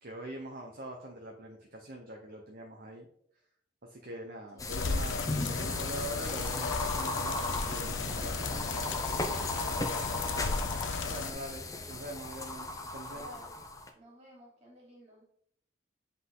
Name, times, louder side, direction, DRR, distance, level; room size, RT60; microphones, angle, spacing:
voice 1, 0.0-3.1 3.8-7.4 7.7-9.0 11.1-13.3, right 1 dB, 50° right, 1 dB, 0.8 m, -43 dB
sound 1, 4.6-13.9, left 2 dB, 20° left, 0.6 m, -36 dB
sound 2, 4.7-11.3, left 4 dB, 80° left, 0.6 m, -35 dB
voice 2, 10.0-10.7 11.7-11.9 13.1-13.6 13.9-15.2, equal, 35° right, -3 dB, 2.7 m, -53 dB
7.8 x 4.0 x 3.8 m, 0.68 s
head